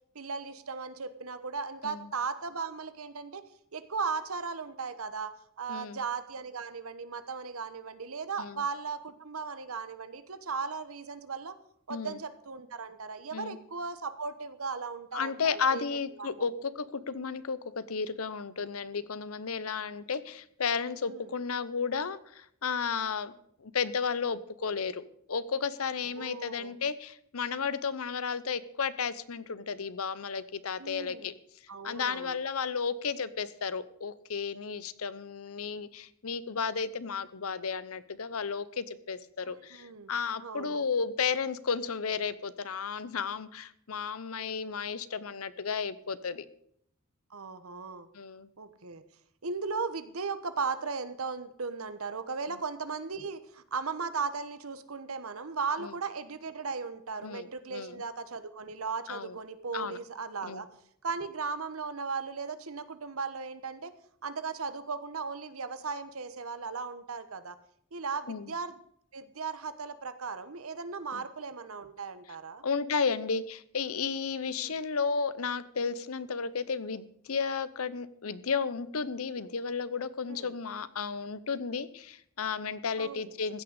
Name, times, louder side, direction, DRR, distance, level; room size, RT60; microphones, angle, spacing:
voice 1, 0.1-3.4 3.7-11.5 11.9-16.5 21.1-21.3 26.1-26.7 30.8-31.3 31.7-32.4 39.4-40.1 40.4-40.8 47.3-48.1 48.6-49.0 49.4-60.7 61.0-63.9 64.2-67.6 67.9-68.8 69.1-72.6 74.4-74.7 80.3-80.5 83.0-83.3, right 5 dB, 75° right, 12 dB, 1.1 m, -37 dB
voice 2, 5.7-6.0 8.4-8.6 11.9-12.2 13.3-13.6 15.1-23.3 23.6-31.3 31.8-46.5 48.1-48.5 55.8-56.0 57.2-58.0 59.1-59.4 59.7-60.0 60.4-60.6 68.3-68.5 71.1-71.2 72.6-83.6, left 5 dB, 80° left, 16 dB, 0.8 m, -33 dB
15.5 x 6.1 x 8.1 m, 0.69 s
head